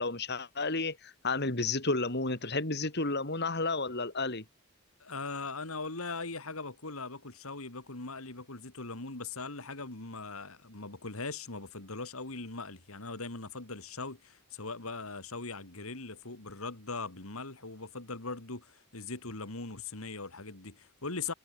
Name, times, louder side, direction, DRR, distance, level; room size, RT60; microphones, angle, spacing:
voice 1, 0.0-4.4, left 3 dB, 50° left, 3.5 m, -32 dB
voice 2, 5.0-21.3, left 3 dB, 70° left, 2.7 m, -40 dB
head